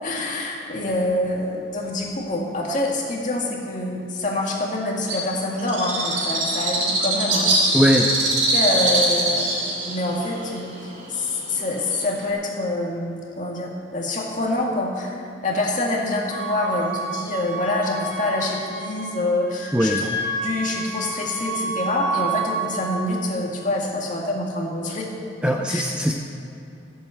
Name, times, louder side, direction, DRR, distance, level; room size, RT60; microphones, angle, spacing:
voice 1, 0.0-7.8 8.5-9.6 9.8-10.7 11.1-15.2 15.4-20.1 20.4-25.1 25.5-25.8, left 2 dB, 40° left, -1 dB, 2.3 m, -26 dB
Bird, 5.1-12.3, right 2 dB, 40° right, 3.3 m, -23 dB
voice 2, 7.7-8.1 19.7-20.1 25.4-26.1, equal, 5° right, 1 dB, 0.6 m, -20 dB
Wind instrument woodwind instrument, 16.3-19.2 19.5-22.5, right 3 dB, 60° right, 3.3 m, -30 dB
15.0 x 8.1 x 7.9 m, 2.7 s
head